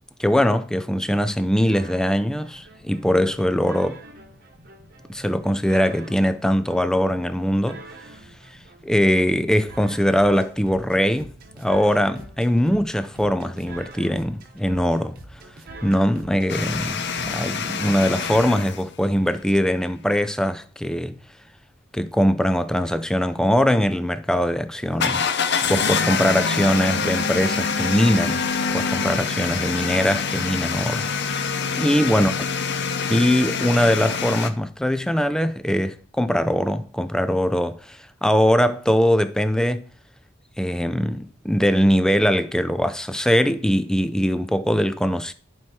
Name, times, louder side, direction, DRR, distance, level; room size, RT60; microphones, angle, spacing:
voice 1, 0.2-4.0 5.1-7.8 8.8-11.3 11.6-15.2 15.8-21.2 21.9-25.3 25.7-28.5 28.7-31.1 31.8-32.3 33.1-39.9 40.6-45.3, equal, 5° left, 0.4 m, -21 dB
sound 1, 1.7-17.7, right 2 dB, 50° right, 1.1 m, -45 dB
sound 2, 16.5-18.8 24.9-34.5, left 5 dB, 60° left, 0.7 m, -25 dB
11.0 x 4.7 x 4.3 m
head